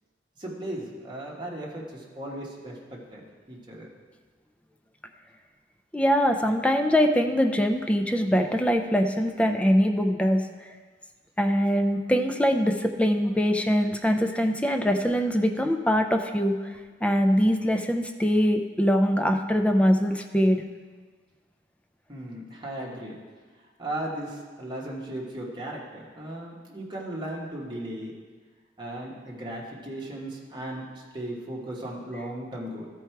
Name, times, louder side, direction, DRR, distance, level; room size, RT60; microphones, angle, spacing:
voice 1, 0.4-3.2 3.5-3.9 22.1-23.2 23.8-28.1 28.8-32.9, right 1 dB, 25° right, -4 dB, 1.4 m, -36 dB
voice 2, 5.9-10.4 11.4-16.8 17.0-20.6, equal, 5° left, 5 dB, 0.4 m, -23 dB
13.0 x 4.7 x 4.5 m, 1.5 s
head